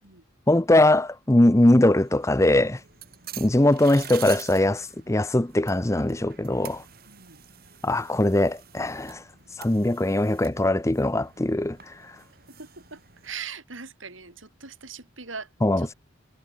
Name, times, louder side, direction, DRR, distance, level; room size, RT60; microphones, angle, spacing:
voice 1, 0.5-2.8 3.4-6.8 7.8-9.2 9.6-11.9 15.6-15.9, left 1 dB, 15° left, 0.7 m, -21 dB
sound 1, 1.8-13.3, right 10 dB, 50° right, 6.8 m, -46 dB
voice 2, 7.1-7.4 12.5-15.5 15.8-16.0, right 5 dB, 85° right, 6.3 m, -41 dB
head